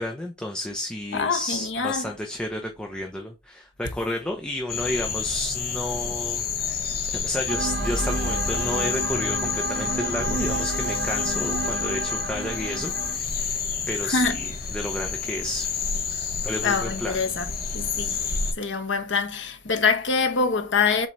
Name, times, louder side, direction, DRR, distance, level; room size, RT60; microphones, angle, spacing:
voice 1, 0.0-15.7 16.4-17.2, left 1 dB, 5° left, 0.8 m, -32 dB
voice 2, 1.1-2.0 14.0-14.4 16.6-18.2 18.6-21.1, left 4 dB, 80° left, 1.2 m, -25 dB
sound 1, 4.7-18.5, left 6 dB, 55° left, 1.3 m, -29 dB
sound 2, 7.5-13.2, right 2 dB, 65° right, 3.0 m, -30 dB
7.3 x 4.0 x 3.2 m
head